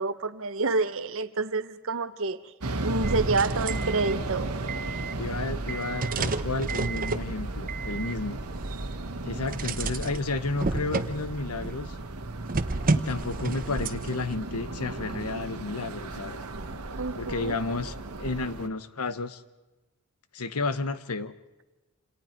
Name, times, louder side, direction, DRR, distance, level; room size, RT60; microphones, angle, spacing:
voice 1, 0.0-2.4 2.8-4.5 17.0-17.6, right 3 dB, 65° right, 12 dB, 1.1 m, -28 dB
sound 1, 2.6-18.7, right 2 dB, 85° right, 1.4 m, -36 dB
sound 2, 3.0-11.8 12.5-14.3, right 3 dB, 40° right, 0.9 m, -32 dB
voice 2, 5.2-8.4 9.2-12.0 12.9-16.4 17.2-19.4 20.3-21.3, left 3 dB, 90° left, 13 dB, 1.1 m, -32 dB
28.0 x 27.5 x 4.5 m, 1.1 s
head